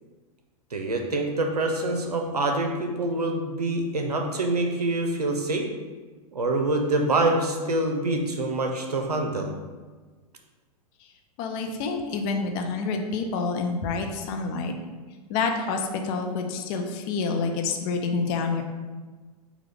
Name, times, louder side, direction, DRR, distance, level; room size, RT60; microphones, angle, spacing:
voice 1, 0.7-5.7 6.3-9.5, right 2 dB, 75° right, 3 dB, 0.7 m, -25 dB
voice 2, 11.4-14.7 15.3-18.6, left 4 dB, 35° left, 3 dB, 0.5 m, -28 dB
6.0 x 2.3 x 3.4 m, 1.3 s
figure-of-eight pair, 100°, 20 cm